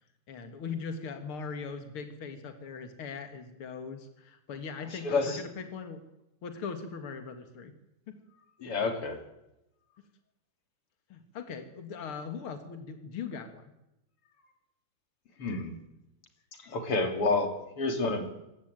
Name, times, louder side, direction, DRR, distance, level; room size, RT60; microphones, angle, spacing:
voice 1, 0.3-6.0 6.4-7.7 8.1-8.2 8.7-8.8 11.1-13.6, left 5 dB, 65° left, 7 dB, 1.3 m, -40 dB
voice 2, 4.9-5.4 8.6-9.2 15.4-15.7 16.5-18.3, left 3 dB, 35° left, 6 dB, 3.1 m, -29 dB
27.0 x 15.0 x 9.1 m, 0.91 s
omnidirectional pair, 5.5 m